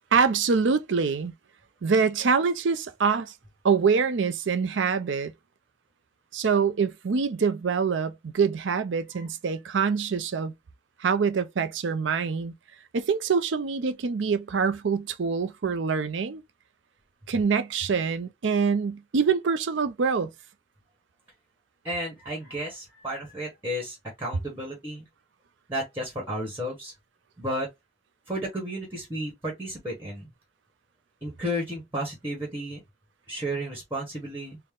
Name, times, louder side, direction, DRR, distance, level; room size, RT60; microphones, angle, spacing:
voice 1, 0.1-1.3 1.8-3.3 3.6-5.3 6.3-10.5 11.0-12.5 12.9-16.4 17.3-20.3, right 5 dB, 85° right, 0.5 m, -25 dB
voice 2, 21.8-25.1 25.7-26.9 27.4-27.7 28.3-30.3 31.2-32.8 33.3-34.6, equal, 10° right, 1.3 m, -33 dB
4.2 x 2.1 x 3.6 m
head